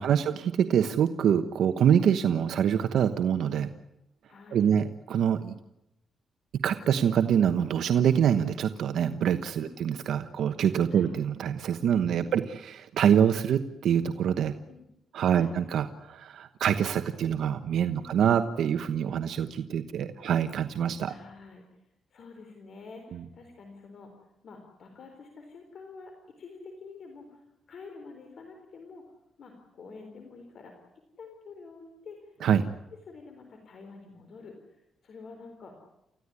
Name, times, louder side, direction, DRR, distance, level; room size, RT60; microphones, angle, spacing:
voice 1, 0.0-3.7 4.5-5.6 6.6-14.5 15.1-21.1 32.4-32.7, right 8 dB, 75° right, 9 dB, 1.1 m, -25 dB
voice 2, 4.3-4.7 9.6-9.8 10.9-11.1 12.2-12.3 14.7-14.8 15.3-15.5 17.9-18.1 20.1-20.4 21.0-29.0 29.4-30.8 31.2-32.3 33.1-35.8, left 4 dB, 55° left, 4 dB, 4.2 m, -48 dB
29.5 x 15.0 x 9.8 m, 0.87 s
cardioid pair, 125°, 0 cm